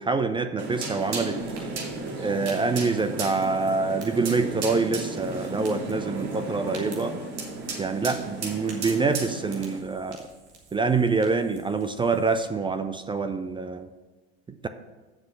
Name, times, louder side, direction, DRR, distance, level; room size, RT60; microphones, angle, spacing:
voice 1, 0.0-1.4 2.2-7.2 7.8-10.3 10.7-13.9, right 4 dB, 15° right, 9 dB, 0.4 m, -26 dB
sound 1, 0.6-9.8, right 2 dB, 50° right, 2.2 m, -34 dB
Fire, 1.4-12.5, right 3 dB, 90° right, 2.2 m, -51 dB
7.5 x 6.2 x 6.7 m, 1.2 s
hypercardioid pair, 85°, 33 cm